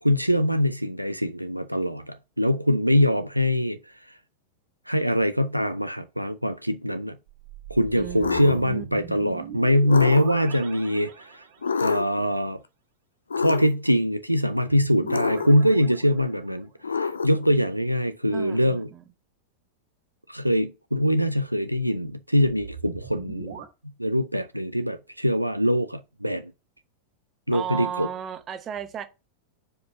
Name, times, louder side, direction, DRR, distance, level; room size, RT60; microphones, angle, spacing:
voice 1, 0.0-3.8 4.9-7.2 7.7-11.4 11.8-12.6 13.4-18.9 20.3-23.5 23.8-26.5 27.5-28.1, equal, 90° right, 0.4 m, -23 dB
sound 1, 7.3-11.8 14.6-16.7 22.4-23.7, right 7 dB, 55° right, 1.4 m, -41 dB
voice 2, 7.9-9.2 18.3-19.0 27.5-29.1, right 8 dB, 25° right, 0.9 m, -35 dB
sound 2, 8.2-8.6 9.9-10.5 11.6-12.2 13.3-13.9 15.1-15.7 16.8-17.5, left 5 dB, 75° left, 0.5 m, -27 dB
4.9 x 4.7 x 5.4 m
figure-of-eight pair, 90°, 0 cm